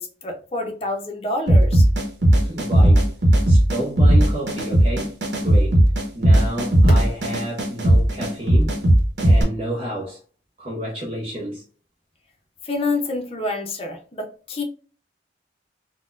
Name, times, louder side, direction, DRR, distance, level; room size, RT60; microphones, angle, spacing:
voice 1, 0.0-1.9 12.6-14.6, left 2 dB, 35° left, 0.6 m, -27 dB
sound 1, 1.5-9.4, right 1 dB, 70° right, 0.9 m, -16 dB
voice 2, 2.4-3.1 3.5-5.1 5.4-5.8 6.1-8.7 9.2-10.2 10.6-11.6, equal, 30° right, 0.8 m, -30 dB
4.1 x 2.2 x 2.4 m
head